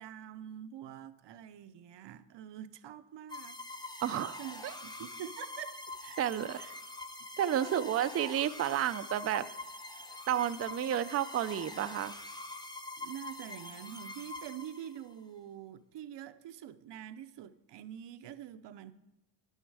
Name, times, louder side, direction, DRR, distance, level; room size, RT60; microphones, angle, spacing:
voice 1, 0.0-3.6 4.4-6.7 7.5-8.0 13.0-18.9, right 10 dB, 75° right, 0.7 m, -46 dB
sound 1, 3.3-15.1, left 2 dB, 10° left, 0.8 m, -45 dB
voice 2, 4.0-4.7 6.2-6.6 7.4-9.5 10.3-12.1, right 10 dB, 35° right, 0.4 m, -31 dB
12.0 x 9.6 x 4.7 m
cardioid pair, 115°, 43 cm